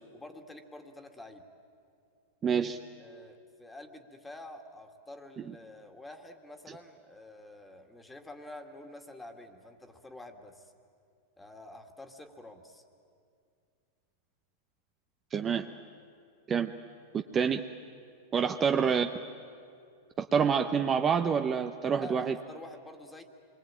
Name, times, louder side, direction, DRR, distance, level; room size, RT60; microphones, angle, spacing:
voice 1, 0.1-1.4 3.0-10.7 11.4-12.8 18.3-18.7 21.9-23.2, left 2 dB, 10° left, 5 dB, 2.2 m, -48 dB
voice 2, 2.4-2.8 15.3-15.6 16.5-16.7 17.1-17.6 18.3-19.1 20.2-22.4, right 6 dB, 25° right, 6 dB, 0.9 m, -27 dB
26.0 x 23.0 x 9.0 m, 2.3 s
hypercardioid pair, 125°, 0 cm